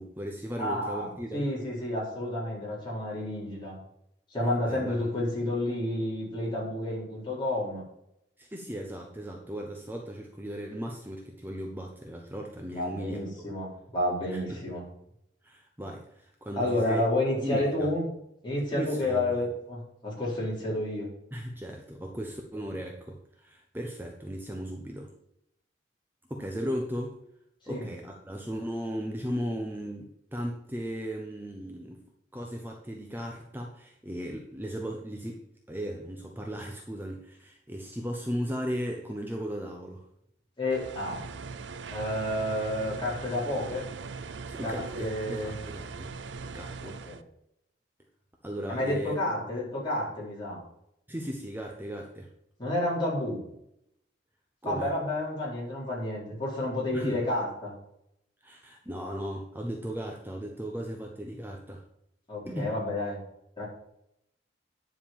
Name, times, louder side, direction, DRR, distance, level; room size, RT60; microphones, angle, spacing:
voice 1, 0.0-1.5 4.7-5.1 8.4-13.5 14.3-14.6 15.4-17.0 17.4-17.9 18.7-19.4 21.3-25.1 26.3-27.2 27.7-32.0 32.3-35.4 35.7-40.0 44.5-46.1 46.5-47.0 48.4-49.2 51.1-52.3 54.6-54.9 56.9-57.2 58.4-61.8 62.5-62.7, equal, 10° right, 1 dB, 0.9 m, -36 dB
voice 2, 0.6-3.8 4.3-7.8 12.7-14.8 16.5-18.1 18.4-21.1 27.6-27.9 40.6-41.2 41.9-43.9 44.6-45.6 46.8-47.2 48.7-50.6 52.6-53.4 54.6-57.7 62.3-63.2 63.6-63.7, left 1 dB, 25° left, -5 dB, 4.6 m, -30 dB
sound 1, 40.7-47.2, right 4 dB, 85° right, 0.6 m, -40 dB
9.9 x 5.3 x 7.1 m, 0.78 s
head